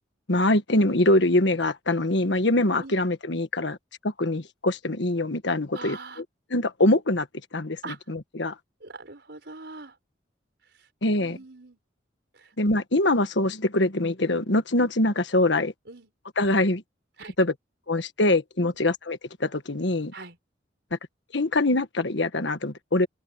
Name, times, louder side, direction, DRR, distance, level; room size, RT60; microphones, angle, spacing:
voice 1, 0.3-3.8 4.0-6.0 6.5-7.3 7.5-7.8 8.1-8.5 11.0-11.4 12.6-15.7 16.4-16.8 17.4-17.5 17.9-20.1 21.3-23.1, left 2 dB, 75° left, 1.5 m, -23 dB
voice 2, 5.7-6.2 7.8-8.0 8.8-10.0 10.8-10.9 11.2-11.8 12.3-12.5 15.9-16.1 17.2-17.3 18.6-18.8 20.1-20.4, right 3 dB, 65° right, 5.0 m, -42 dB
open air
head